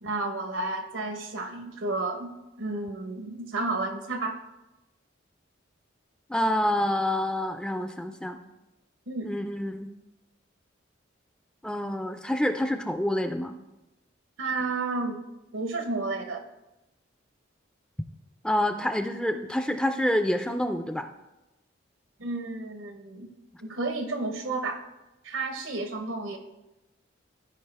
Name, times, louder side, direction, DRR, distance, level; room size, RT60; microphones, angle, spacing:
voice 1, 0.0-2.3 2.6-4.3 9.1-9.4 14.4-15.2 15.5-16.4 22.2-23.3 23.6-24.8 25.2-26.4, right 3 dB, 85° right, 5 dB, 1.1 m, -31 dB
voice 2, 6.3-8.4 9.2-9.9 11.6-13.6 18.4-21.1, left 1 dB, 5° left, 8 dB, 0.3 m, -27 dB
13.0 x 4.9 x 3.4 m, 0.98 s
head